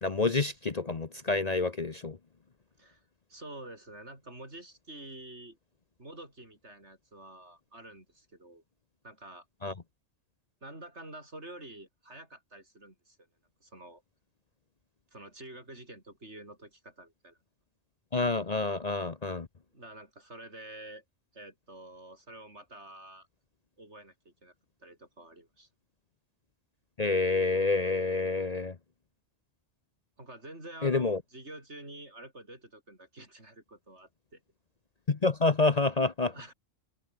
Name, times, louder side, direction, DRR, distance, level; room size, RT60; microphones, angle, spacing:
voice 1, 0.0-2.2 9.6-9.7 18.1-19.5 27.0-28.7 30.8-31.2 35.1-36.3, left 3 dB, 35° left, 1.0 m, -28 dB
voice 2, 3.3-5.6 6.0-8.6 9.0-9.5 10.6-13.2 13.6-14.0 15.1-17.4 19.7-21.0 21.3-23.3 23.8-24.5 24.8-25.7 30.2-34.4 36.3-36.5, right 1 dB, 65° right, 7.1 m, -48 dB
omnidirectional pair, 1.3 m